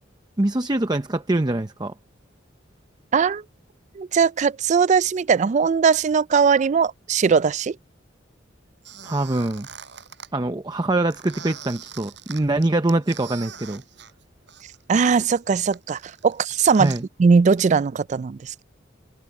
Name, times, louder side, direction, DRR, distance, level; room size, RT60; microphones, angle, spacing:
voice 1, 0.4-1.9 9.0-9.7 10.3-13.8 16.7-17.0, right 2 dB, 20° right, 0.7 m, -24 dB
voice 2, 3.1-3.4 4.0-7.7 14.9-16.9 17.2-18.6, right 5 dB, 40° right, 0.3 m, -19 dB
Squeak, 8.8-10.3 11.1-14.8 15.1-17.0, right 7 dB, 65° right, 7.5 m, -42 dB
head